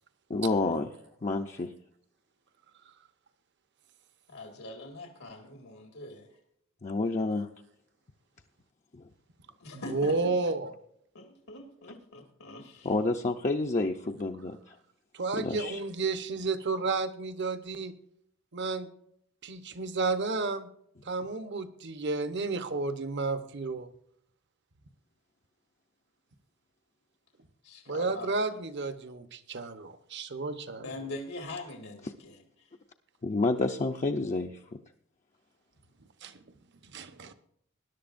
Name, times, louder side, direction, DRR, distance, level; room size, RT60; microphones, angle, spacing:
voice 1, 0.3-0.9 1.2-1.7 6.8-7.5 8.9-9.0 12.8-14.8 15.4-15.8 33.2-34.8, left 3 dB, 35° left, 2 dB, 0.6 m, -29 dB
voice 2, 4.3-6.3 9.6-10.4 11.1-12.9 27.6-28.3 30.8-32.7, left 2 dB, 85° left, 2 dB, 2.0 m, -43 dB
voice 3, 9.7-10.7 15.1-17.9 18.5-18.9 19.4-20.7 21.0-23.9 27.9-30.9 36.2-36.5 36.8-37.3, right 3 dB, 55° right, 10 dB, 1.0 m, -32 dB
20.0 x 11.0 x 2.6 m, 0.70 s
head